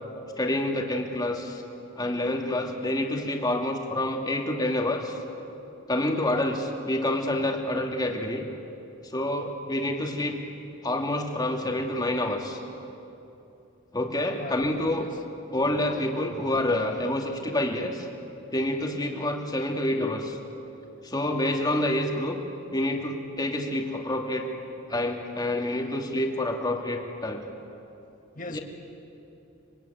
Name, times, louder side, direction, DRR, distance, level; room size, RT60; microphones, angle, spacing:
voice 1, 0.4-1.6 2.0-5.2 5.9-8.5 9.0-10.4 10.8-12.6 13.9-15.1 15.5-18.1 18.5-20.4 21.0-22.4 22.7-24.5 24.9-27.4 28.5-28.6, left 1 dB, 20° left, 2 dB, 2.4 m, -28 dB
voice 2, 14.4-14.7 15.0-15.2 28.3-28.6, left 2 dB, 45° left, 5 dB, 1.8 m, -38 dB
25.5 x 23.5 x 9.5 m, 2.8 s
head